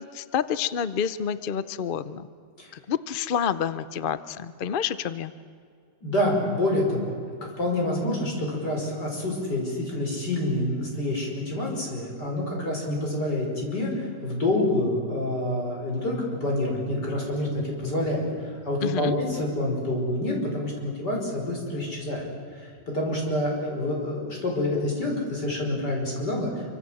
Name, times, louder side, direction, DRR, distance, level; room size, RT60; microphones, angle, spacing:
voice 1, 0.1-2.3 2.9-5.3 18.8-19.1, left 8 dB, 50° left, 14 dB, 0.6 m, -28 dB
voice 2, 6.0-7.1 7.4-22.3 22.6-26.5, left 1 dB, 75° left, -1 dB, 6.1 m, -27 dB
26.5 x 25.5 x 7.8 m, 2.2 s
omnidirectional pair, 1.8 m